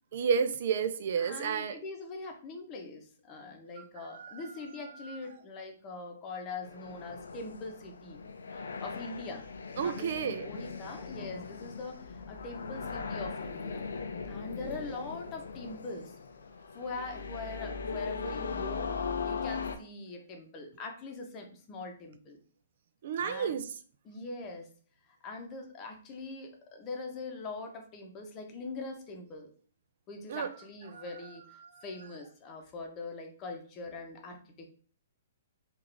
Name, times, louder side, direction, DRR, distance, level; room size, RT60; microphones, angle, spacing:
voice 1, 0.1-1.8 3.8-4.4 4.8-5.2 9.8-10.5 23.0-23.6 30.3-30.5 30.9-31.0 31.6-31.8, right 6 dB, 60° right, 10 dB, 0.3 m, -32 dB
voice 2, 1.2-8.2 8.8-9.4 9.8-13.9 14.3-16.2 16.7-18.9 19.2-22.4 23.2-23.6 24.0-24.7 25.2-29.5 30.1-31.4 31.8-34.7, left 3 dB, 30° left, 3 dB, 0.8 m, -42 dB
sound 1, 6.6-19.8, left 5 dB, 80° left, 0.4 m, -39 dB
3.7 x 2.4 x 3.3 m, 0.42 s
hypercardioid pair, 135°, 0 cm